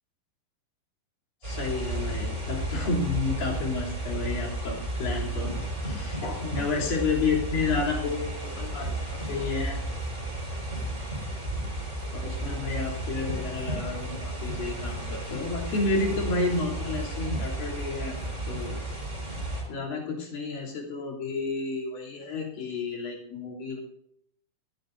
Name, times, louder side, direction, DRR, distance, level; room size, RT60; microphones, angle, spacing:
voice 1, 1.4-5.5 5.8-9.8 12.1-18.2 18.4-18.8 19.7-23.8, left 4 dB, 55° left, -3 dB, 4.7 m, -31 dB
sound 1, 1.4-19.6, right 1 dB, 15° right, 5.2 m, -33 dB
20.5 x 14.5 x 2.6 m, 0.73 s
omnidirectional pair, 4.9 m